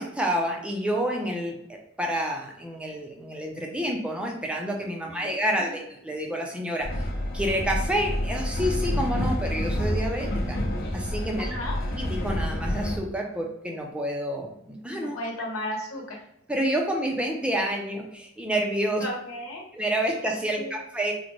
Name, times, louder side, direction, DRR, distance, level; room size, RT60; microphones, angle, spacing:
voice 1, 0.0-1.6 2.0-7.1 7.3-10.6 10.9-11.5 11.9-15.2 16.5-19.0 19.7-21.1, equal, 5° right, 1 dB, 0.4 m, -29 dB
Train, 6.8-13.0, left 1 dB, 50° left, 0.6 m, -28 dB
voice 2, 11.4-11.8 14.9-16.2 19.0-19.7 20.6-20.7, left 1 dB, 80° left, -1 dB, 1.0 m, -34 dB
3.8 x 2.1 x 3.0 m, 0.74 s
head